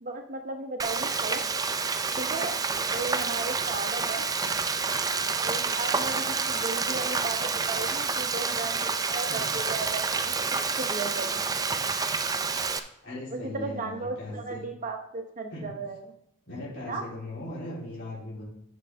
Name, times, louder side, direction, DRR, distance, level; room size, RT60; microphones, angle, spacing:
voice 1, 0.0-1.4 2.2-2.6 2.9-4.2 5.4-11.4 13.3-16.0 16.9-17.1, right 3 dB, 40° right, 5 dB, 0.8 m, -35 dB
Frying (food), 0.8-12.8, right 4 dB, 15° right, 0.4 m, -28 dB
voice 2, 13.0-14.6 15.5-15.6 16.5-18.4, left 1 dB, 55° left, -7 dB, 3.5 m, -39 dB
9.8 x 6.2 x 3.4 m, 0.79 s
head